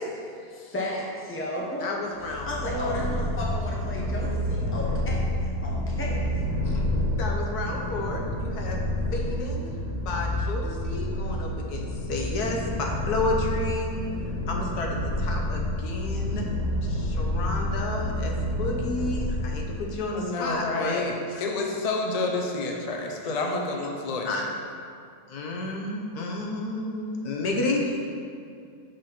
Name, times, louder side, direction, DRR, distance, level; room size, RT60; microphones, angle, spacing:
voice 1, 0.2-1.9 2.4-6.4, left 1 dB, 10° left, -3 dB, 0.7 m, -34 dB
voice 2, 1.8-3.2 6.6-6.8 7.2-8.8 9.1-9.7 10.0-13.9 14.5-16.5 16.8-21.0 21.3-21.4 23.2-23.5 24.2-24.5 25.3-28.0, left 2 dB, 85° left, 0 dB, 1.4 m, -31 dB
Purr, 2.2-19.9, left 1 dB, 50° right, 2.1 m, -29 dB
voice 3, 20.1-24.3, left 3 dB, 60° left, 1 dB, 0.3 m, -29 dB
6.1 x 4.2 x 5.7 m, 2.3 s
omnidirectional pair, 1.6 m